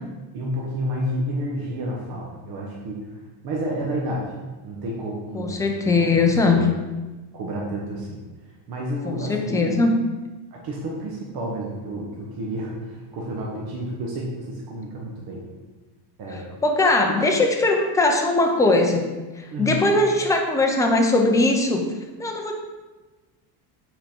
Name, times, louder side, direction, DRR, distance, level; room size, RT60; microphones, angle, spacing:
voice 1, 0.3-3.2 3.4-4.2 4.6-6.6 7.3-8.2 8.7-9.7 10.5-15.4 16.2-16.5 17.1-17.2 19.5-19.8, right 1 dB, 45° right, -3 dB, 1.3 m, -30 dB
voice 2, 5.3-6.6 9.0-9.9 16.3-19.0 19.3-22.5, left 2 dB, 5° left, 2 dB, 0.5 m, -20 dB
7.9 x 4.5 x 4.4 m, 1.2 s
cardioid pair, 155°, 50 cm